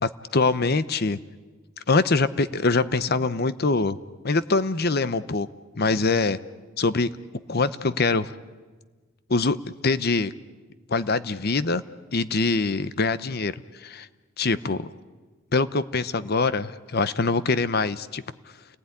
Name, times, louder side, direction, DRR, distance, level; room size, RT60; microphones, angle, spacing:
voice 1, 0.0-1.2 1.9-4.0 4.2-5.5 5.8-6.4 6.8-7.1 7.5-8.3 9.3-9.6 9.8-10.3 10.9-11.8 12.1-13.5 13.8-14.1 14.4-14.9 15.5-18.2, left 3 dB, 50° left, 14 dB, 0.8 m, -23 dB
30.0 x 19.5 x 9.8 m, 1.4 s
head